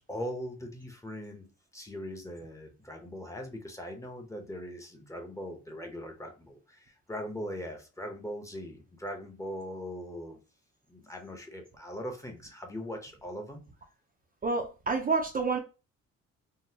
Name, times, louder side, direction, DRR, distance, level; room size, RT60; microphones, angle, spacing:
voice 1, 0.0-1.5 1.7-10.4 10.9-13.6, equal, 10° left, 0.8 m, -40 dB
voice 2, 14.4-15.6, right 4 dB, 30° right, 0.6 m, -28 dB
3.8 x 2.1 x 2.8 m
cardioid pair, 90°, 30 cm